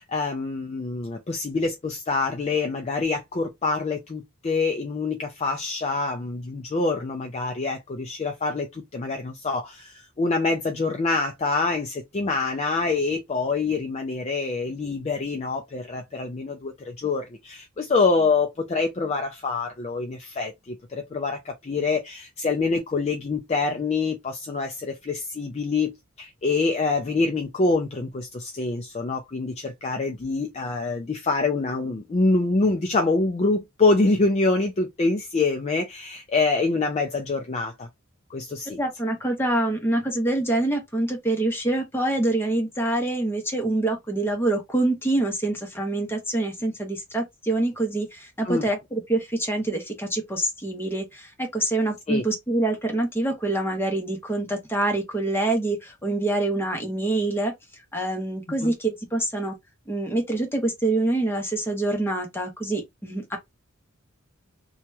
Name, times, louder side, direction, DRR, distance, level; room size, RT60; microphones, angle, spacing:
voice 1, 0.0-37.9 38.3-38.8 48.4-48.7 52.1-52.2 58.6-58.7, left 3 dB, 30° left, 0.4 m, -25 dB
voice 2, 38.8-57.5 57.9-59.5 59.9-63.4, right 2 dB, 10° left, 0.9 m, -25 dB
2.9 x 2.3 x 3.0 m
head